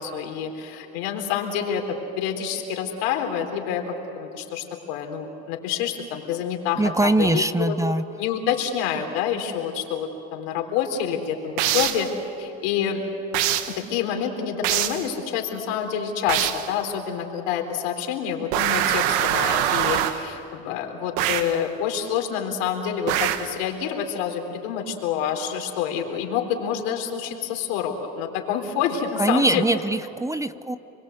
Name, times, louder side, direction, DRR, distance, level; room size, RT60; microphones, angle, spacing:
voice 1, 0.0-1.8 2.2-7.7 8.2-12.1 12.4-13.0 13.8-29.6, left 8 dB, 90° left, 3 dB, 3.8 m, -27 dB
voice 2, 6.8-8.0 29.2-30.8, right 2 dB, 10° right, 14 dB, 0.7 m, -22 dB
sound 1, 11.6-12.1 13.3-13.8 14.6-15.1 16.3-16.7 18.5-20.3 21.2-21.6 23.1-23.6, right 11 dB, 85° right, 1.3 m, -23 dB
29.5 x 22.5 x 8.0 m, 3.0 s
supercardioid pair, 100°, 31 cm